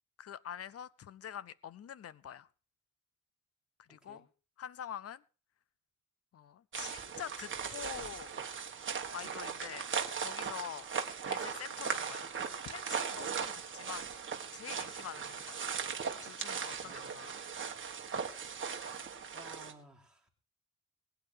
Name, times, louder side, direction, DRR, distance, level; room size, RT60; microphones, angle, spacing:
voice 1, 0.2-2.5 3.9-4.3 4.6-5.2 6.3-8.3 9.1-9.9 10.2-10.8 11.3-12.3 12.6-14.1 14.5-15.6 16.2-17.4, left 9 dB, 50° left, 0.7 m, -45 dB
voice 2, 3.9-4.2 16.8-17.6 19.3-20.3, right 1 dB, ahead, 3.3 m, -56 dB
sound 1, 6.7-19.7, right 6 dB, 40° right, 1.6 m, -38 dB
21.0 x 9.4 x 4.6 m
wide cardioid pair, 175°, 31 cm